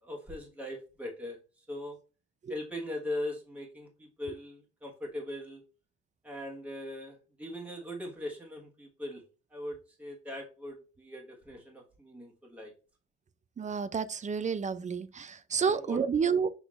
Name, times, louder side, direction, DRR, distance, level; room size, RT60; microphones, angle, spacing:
voice 1, 0.0-2.0 2.5-5.6 6.2-9.2 9.5-12.7 15.6-16.0, left 1 dB, 5° right, 1.2 m, -40 dB
voice 2, 13.6-16.5, right 6 dB, 25° right, 0.4 m, -30 dB
6.0 x 3.4 x 2.4 m
cardioid pair, 90°, 30 cm